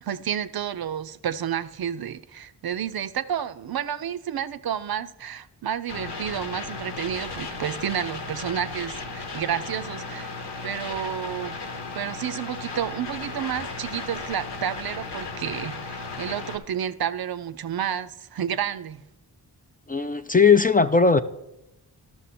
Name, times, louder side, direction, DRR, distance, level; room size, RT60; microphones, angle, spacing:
voice 1, 0.0-10.3 10.6-11.5 11.9-19.0, right 9 dB, 60° right, 0.5 m, -30 dB
sound 1, 5.9-16.6, left 3 dB, 80° left, 1.1 m, -35 dB
voice 2, 19.9-21.2, left 5 dB, 20° left, 0.4 m, -18 dB
11.5 x 6.1 x 4.2 m
cardioid pair, 45°, 42 cm